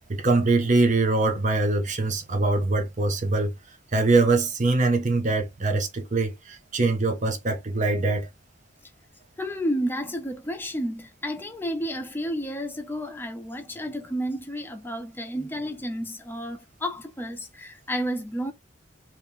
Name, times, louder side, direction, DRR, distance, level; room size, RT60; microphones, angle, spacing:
voice 1, 0.1-3.5 3.9-8.3, right 3 dB, 40° right, 0.7 m, -23 dB
voice 2, 9.4-18.5, equal, 10° left, 0.5 m, -31 dB
2.9 x 2.8 x 3.4 m
head